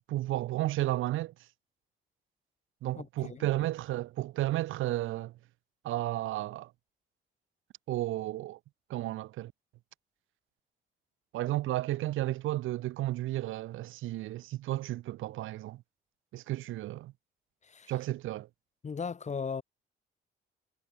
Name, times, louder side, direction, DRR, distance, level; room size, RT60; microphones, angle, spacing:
voice 1, 0.1-1.3 2.8-5.4 5.8-6.7 7.9-8.6 8.9-9.5 11.3-15.8 16.3-17.1 17.9-18.5, right 15 dB, 85° right, 1.6 m, -33 dB
voice 2, 3.0-3.5 17.6-17.9 18.8-19.6, left 5 dB, 35° left, 1.8 m, -37 dB
cardioid pair, 90°, 20 cm